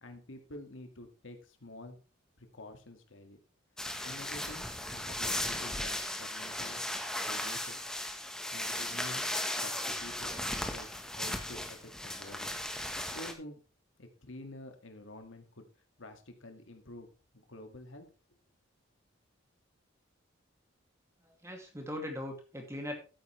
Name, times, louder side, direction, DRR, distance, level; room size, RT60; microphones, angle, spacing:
voice 1, 0.0-2.0 2.4-3.4 4.0-6.8 7.3-7.9 8.5-9.3 9.6-12.5 12.9-13.6 14.0-15.7 16.0-17.1 17.3-18.1, left 1 dB, 75° left, 5 dB, 2.0 m, -49 dB
sound 1, 3.8-13.3, left 1 dB, 5° left, 1.2 m, -36 dB
voice 2, 21.3-22.9, left 1 dB, 15° right, 2 dB, 2.4 m, -40 dB
13.0 x 9.2 x 3.2 m, 0.33 s
head